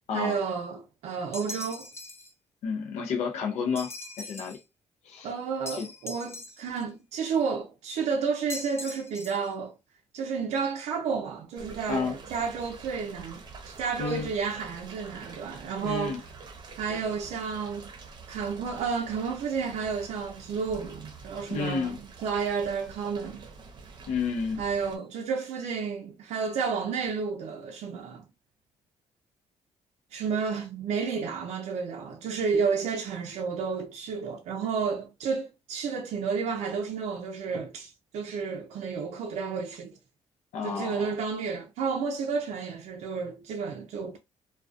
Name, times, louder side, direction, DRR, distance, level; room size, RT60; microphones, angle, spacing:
voice 1, 0.1-1.9 5.2-9.8 10.1-16.3 16.8-17.9 18.3-23.4 24.6-28.2 30.1-40.0 40.6-44.2, right 5 dB, 70° right, 0.4 m, -31 dB
sound 1, 1.3-2.3 3.8-4.6 5.7-6.8 8.5-9.5, left 2 dB, 20° left, 0.6 m, -41 dB
voice 2, 2.6-3.9 4.2-4.6 5.0-5.3 5.7-5.9 11.9-12.2 14.0-14.3 15.8-16.2 21.5-22.0 24.1-24.6 40.5-41.1, left 5 dB, 75° left, 0.5 m, -30 dB
sound 2, 11.6-25.0, right 4 dB, 40° right, 0.7 m, -47 dB
2.3 x 2.2 x 2.4 m
cardioid pair, 100°, 12 cm